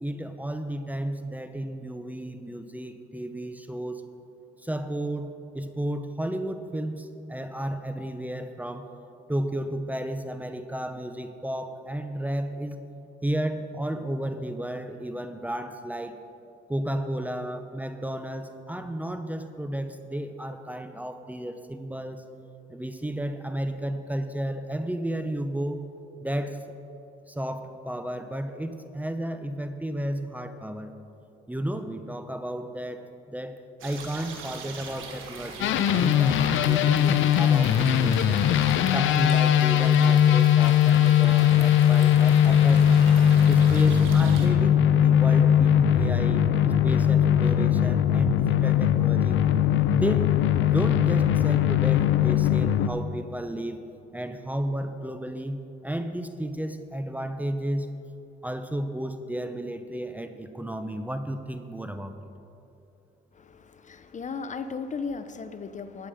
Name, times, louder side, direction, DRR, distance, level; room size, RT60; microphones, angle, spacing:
voice 1, 0.0-4.0 4.6-8.9 9.3-12.8 13.2-16.2 16.7-22.2 22.7-25.8 26.2-26.7 27.3-30.9 31.5-33.6 33.8-38.5 38.9-42.9 43.5-49.4 49.9-53.8 54.1-57.9 58.4-62.2, right 1 dB, 10° right, 8 dB, 0.7 m, -33 dB
sound 1, 33.8-44.5, right 4 dB, 90° right, 1.6 m, -41 dB
sound 2, 35.6-52.9, left 9 dB, 80° left, 0.6 m, -20 dB
voice 2, 63.3-66.1, left 5 dB, 40° left, 10 dB, 0.7 m, -36 dB
14.0 x 9.4 x 5.0 m, 2.7 s
cardioid pair, 90°, 20 cm